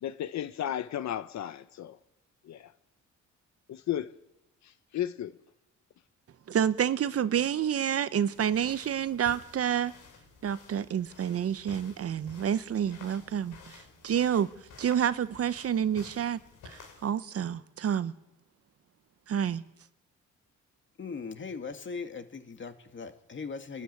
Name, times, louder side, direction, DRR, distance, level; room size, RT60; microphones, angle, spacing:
voice 1, 0.0-2.0 2.4-2.7 3.7-4.1 4.6-5.4, left 11 dB, 65° left, 0.9 m, -34 dB
voice 2, 6.5-9.9 10.4-14.5 14.8-16.4 16.6-18.1 19.3-19.6, right 9 dB, 50° right, 0.9 m, -29 dB
sound 1, 8.3-17.1, left 5 dB, 80° left, 4.6 m, -52 dB
voice 3, 21.0-23.8, left 5 dB, 40° left, 2.2 m, -39 dB
24.5 x 12.5 x 9.7 m
cardioid pair, 90°, 30 cm